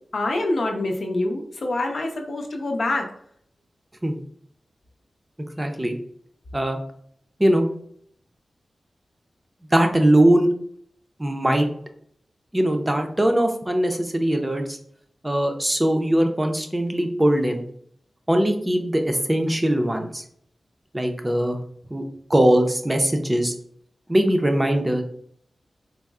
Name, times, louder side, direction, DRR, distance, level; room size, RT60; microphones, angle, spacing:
voice 1, 0.1-3.1, left 2 dB, 60° left, 2 dB, 0.6 m, -25 dB
voice 2, 5.6-6.0 6.5-6.8 7.4-7.7 9.7-10.5 11.2-11.7 12.5-14.8 15.2-17.6 18.3-20.2 20.9-21.6 21.9-22.0 22.3-23.5 24.1-25.0, right 1 dB, 15° right, 4 dB, 0.5 m, -21 dB
4.2 x 2.0 x 3.5 m, 0.65 s
wide cardioid pair, 115°, 0 cm